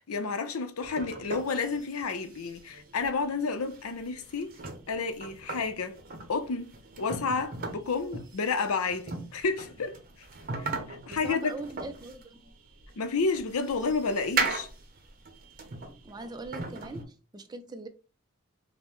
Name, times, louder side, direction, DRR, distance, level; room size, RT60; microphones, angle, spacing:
voice 1, 0.1-4.5 4.9-6.0 6.3-10.3 10.6-11.5 13.0-14.7, left 4 dB, 85° left, 0.6 m, -31 dB
sound 1, 0.8-17.0, right 3 dB, 40° right, 0.7 m, -38 dB
voice 2, 11.0-12.5 16.0-17.9, right 2 dB, 20° right, 0.3 m, -41 dB
5.1 x 2.1 x 3.0 m
head